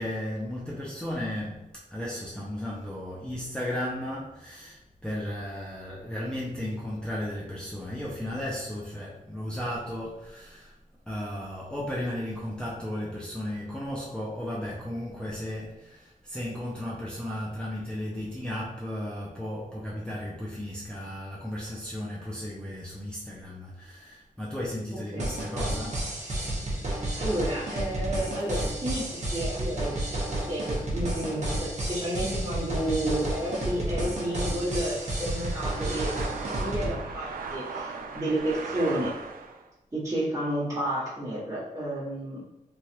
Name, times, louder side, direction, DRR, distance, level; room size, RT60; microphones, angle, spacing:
voice 1, 0.0-1.6 1.9-10.7 11.1-26.0, left 1 dB, 5° left, -6 dB, 0.5 m, -35 dB
sound 1, 25.2-36.9, right 1 dB, 50° right, 0.8 m, -31 dB
voice 2, 27.1-29.0 29.3-30.0 30.3-36.1 36.6-39.2 39.9-42.4, right 1 dB, 20° right, -13 dB, 1.2 m, -31 dB
sound 2, 32.6-39.7, right 4 dB, 75° right, 0.4 m, -39 dB
3.2 x 2.4 x 2.8 m, 1.0 s
wide cardioid pair, 135°, 15 cm